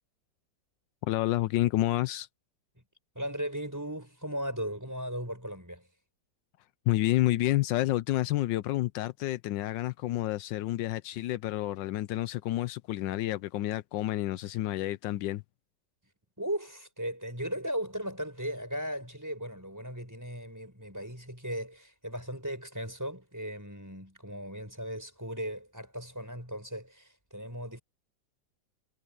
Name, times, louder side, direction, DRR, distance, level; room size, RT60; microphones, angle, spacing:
voice 1, 1.0-2.3 6.9-15.4, left 16 dB, 80° left, 1.3 m, -29 dB
voice 2, 3.2-5.9 16.4-27.8, equal, 10° right, 5.7 m, -37 dB
omnidirectional pair, 2.0 m